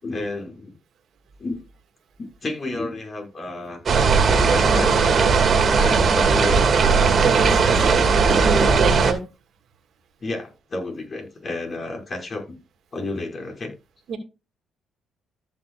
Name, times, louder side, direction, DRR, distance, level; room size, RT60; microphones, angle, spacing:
voice 1, 0.0-0.8 1.4-1.6 2.2-3.8 4.4-5.0 5.7-6.7 7.6-8.5 10.2-12.6 12.9-13.7, left 2 dB, 40° left, 3 dB, 5.4 m, -31 dB
sound 1, 3.9-9.1, right 5 dB, 45° right, 2.4 m, -17 dB
voice 2, 7.2-7.9 8.3-9.2 14.1-14.2, right 5 dB, 65° right, 6 dB, 2.2 m, -26 dB
14.0 x 6.5 x 2.4 m, 0.27 s
cardioid pair, 90°, 0 cm